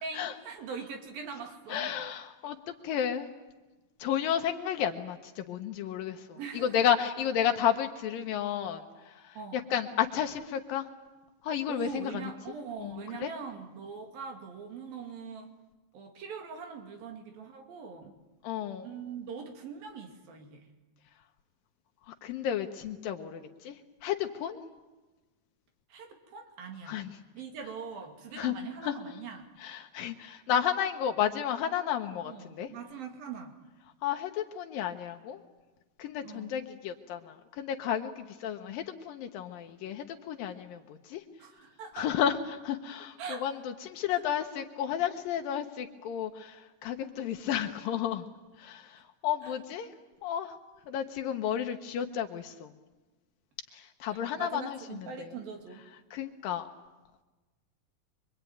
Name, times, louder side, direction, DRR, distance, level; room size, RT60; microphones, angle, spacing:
voice 1, 0.0-1.9 6.4-6.8 9.4-9.6 11.7-15.5 15.9-18.1 18.8-20.7 25.9-27.0 27.3-29.5 32.2-33.6 36.2-36.5 41.4-42.1 43.2-43.5 44.1-44.2 49.4-49.6 54.1-55.8, right 5 dB, 80° right, 4 dB, 4.3 m, -42 dB
voice 2, 1.7-2.6 2.8-3.3 4.0-10.9 11.4-12.3 12.8-13.3 18.4-18.9 22.2-23.8 24.0-24.6 26.9-27.1 28.4-28.5 28.8-28.9 29.6-32.7 34.0-35.4 36.0-38.1 38.4-41.2 42.0-43.5 43.8-48.3 48.6-49.9 50.2-50.5 50.9-52.7 53.7-54.8 55.2-55.3 56.1-56.7, left 9 dB, 80° left, 5 dB, 2.7 m, -32 dB
24.5 x 23.0 x 9.3 m, 1.2 s
omnidirectional pair, 4.0 m